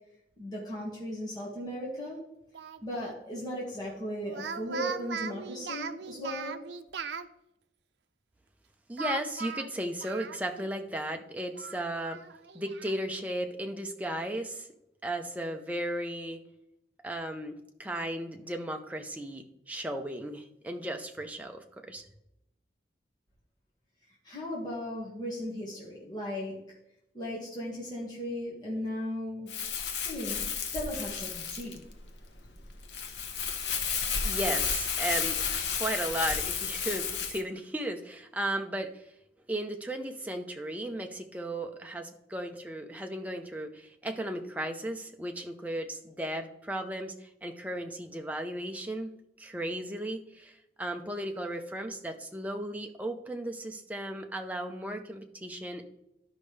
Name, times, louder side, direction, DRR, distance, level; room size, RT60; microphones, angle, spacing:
voice 1, 0.4-2.2 2.8-6.6 24.2-26.6 27.1-29.5 30.1-31.8, left 1 dB, 25° left, -5 dB, 1.8 m, -36 dB
Speech, 2.5-3.2 4.2-7.3 9.0-10.7 11.0-11.1 11.5-13.0, right 6 dB, 80° right, 0.5 m, -39 dB
voice 2, 8.9-12.2 12.5-14.7 15.0-16.4 17.0-22.1 34.2-35.4 35.7-39.0 39.5-55.8, right 1 dB, 10° right, 4 dB, 0.7 m, -35 dB
Crumpling crinkling, 29.5-37.4, left 6 dB, 85° left, 1.0 m, -32 dB
12.5 x 5.3 x 3.3 m, 0.83 s
head